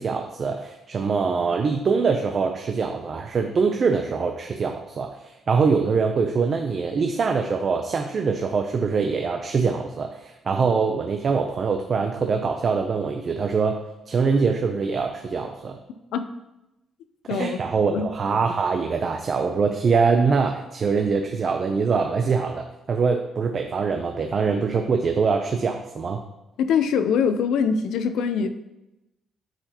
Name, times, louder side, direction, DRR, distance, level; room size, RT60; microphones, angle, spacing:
voice 1, 0.0-5.1 5.5-15.8 17.3-26.2, right 5 dB, 35° right, 4 dB, 0.5 m, -23 dB
voice 2, 17.3-18.1 26.6-28.5, left 6 dB, 75° left, 9 dB, 0.6 m, -23 dB
12.0 x 4.9 x 2.9 m, 0.95 s
cardioid pair, 170°, 0 cm